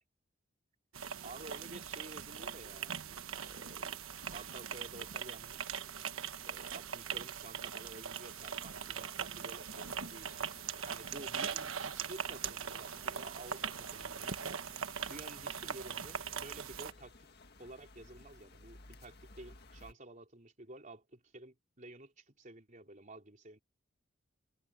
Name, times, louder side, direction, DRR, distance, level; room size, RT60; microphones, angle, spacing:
sound 1, 0.9-16.9, right 7 dB, 80° right, 1.3 m, -41 dB
voice 1, 1.2-3.0 3.3-5.7 6.4-10.3 10.8-14.3 15.1-17.3 17.6-23.6, right 2 dB, 40° right, 4.0 m, -52 dB
sound 2, 8.3-19.9, left 3 dB, 50° left, 1.8 m, -58 dB
head